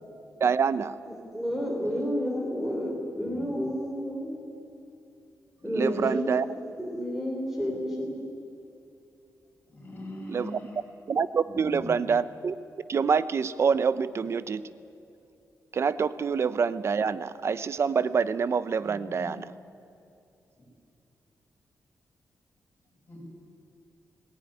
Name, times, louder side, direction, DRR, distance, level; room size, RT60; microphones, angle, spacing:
voice 1, 0.4-1.0 5.7-6.4 10.3-10.5 11.1-12.5 12.9-14.6 15.7-19.5, right 6 dB, 45° right, 15 dB, 0.6 m, -26 dB
voice 2, 1.1-4.4 5.6-8.1, equal, 5° right, -1 dB, 3.4 m, -31 dB
voice 3, 3.1-3.7 5.6-6.2 8.0-8.1 9.7-10.8 11.5-11.9 18.8-19.3 20.6-20.7 23.1-23.2, left 1 dB, 30° left, -2 dB, 7.1 m, -42 dB
19.0 x 17.0 x 9.9 m, 2.6 s
wide cardioid pair, 130°, 6 cm